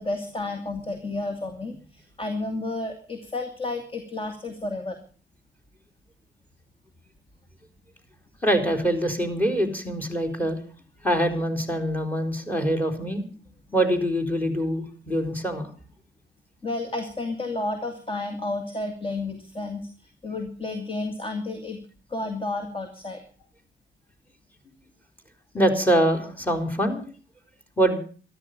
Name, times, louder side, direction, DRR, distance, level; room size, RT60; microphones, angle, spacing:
voice 1, 0.0-5.0 16.6-19.8 20.2-21.8 22.1-23.2, left 2 dB, 25° left, 7 dB, 2.5 m, -31 dB
voice 2, 8.4-10.6 11.0-13.2 13.7-15.7 25.5-27.0 27.8-28.0, right 1 dB, 10° left, 8 dB, 4.4 m, -24 dB
13.5 x 13.0 x 6.7 m, 0.41 s
cardioid pair, 90°, 20 cm